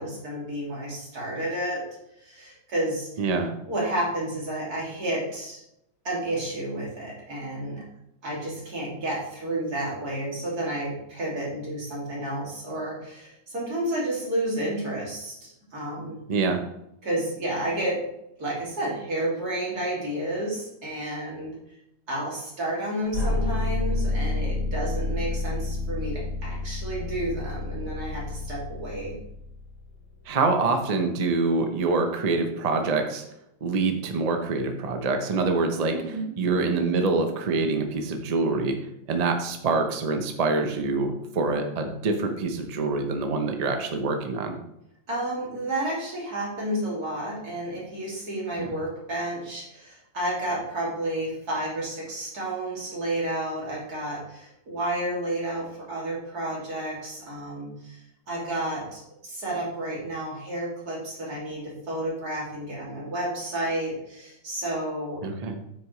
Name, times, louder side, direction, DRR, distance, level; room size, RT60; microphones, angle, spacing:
voice 1, 0.0-1.8 2.2-3.1 3.7-5.6 6.0-7.8 8.2-16.2 17.0-18.0 18.4-21.5 22.1-29.2 35.9-36.3 45.1-58.0 58.3-65.2, right 1 dB, 50° right, -4 dB, 3.1 m, -31 dB
voice 2, 3.2-3.5 16.3-16.6 30.3-33.2 33.6-36.0 36.4-38.8 39.1-44.5 48.6-48.7 65.2-65.6, right 3 dB, 80° right, 5 dB, 0.3 m, -25 dB
sound 1, 23.1-30.0, left 2 dB, 80° left, 4.3 m, -29 dB
8.5 x 6.4 x 3.2 m, 0.81 s
omnidirectional pair, 2.1 m